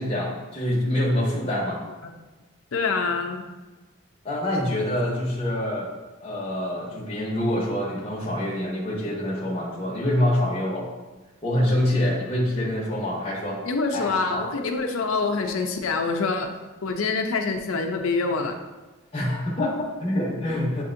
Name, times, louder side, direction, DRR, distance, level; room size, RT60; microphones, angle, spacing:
voice 1, 0.0-1.8 4.2-5.9 6.2-10.9 11.4-13.6 13.9-14.5 19.1-20.8, left 1 dB, 25° left, -5 dB, 0.8 m, -26 dB
voice 2, 2.7-3.4 13.6-16.5 16.8-18.6, left 4 dB, 75° left, 4 dB, 0.5 m, -25 dB
7.5 x 2.7 x 2.5 m, 1.2 s
head